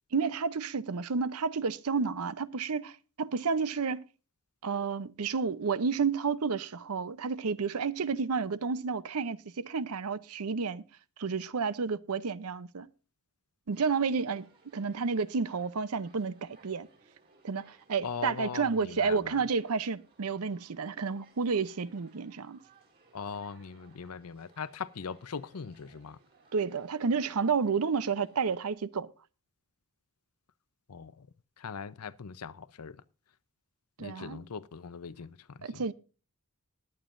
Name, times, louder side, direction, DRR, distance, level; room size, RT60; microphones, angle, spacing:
voice 1, 0.1-4.1 4.6-10.8 11.2-12.9 13.7-14.5 14.7-16.9 17.4-22.6 26.5-29.1 34.0-34.4 35.6-35.9, right 5 dB, 75° right, 0.6 m, -31 dB
sound 1, 13.7-28.7, right 4 dB, 45° right, 4.1 m, -63 dB
voice 2, 18.0-19.4 23.1-26.2 30.9-31.3 31.6-33.0 34.0-35.8, left 6 dB, 75° left, 0.7 m, -40 dB
20.5 x 9.0 x 2.5 m
head